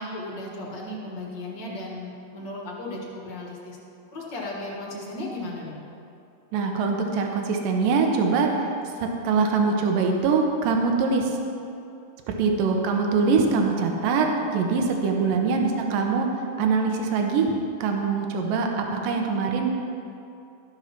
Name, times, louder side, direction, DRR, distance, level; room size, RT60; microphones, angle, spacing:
voice 1, 0.0-3.8 4.1-5.8 15.3-15.4, left 1 dB, 50° left, -2 dB, 1.4 m, -35 dB
voice 2, 6.5-8.7 9.0-11.4 12.3-17.5 17.8-19.7, right 4 dB, 80° right, 2 dB, 2.6 m, -23 dB
13.0 x 6.6 x 5.8 m, 2.6 s
omnidirectional pair, 3.9 m